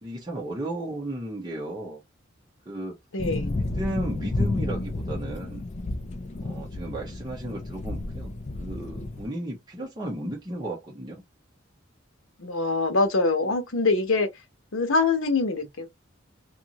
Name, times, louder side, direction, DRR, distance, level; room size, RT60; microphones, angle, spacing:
voice 1, 0.0-2.0 2.7-3.0 3.5-5.7 6.4-8.3 8.6-11.2, right 1 dB, 20° right, 0.8 m, -34 dB
voice 2, 3.1-3.6 12.4-14.3 14.7-15.9, left 3 dB, 90° left, 0.9 m, -24 dB
sound 1, 3.2-9.3, left 2 dB, 35° left, 0.4 m, -31 dB
2.6 x 2.5 x 2.9 m
head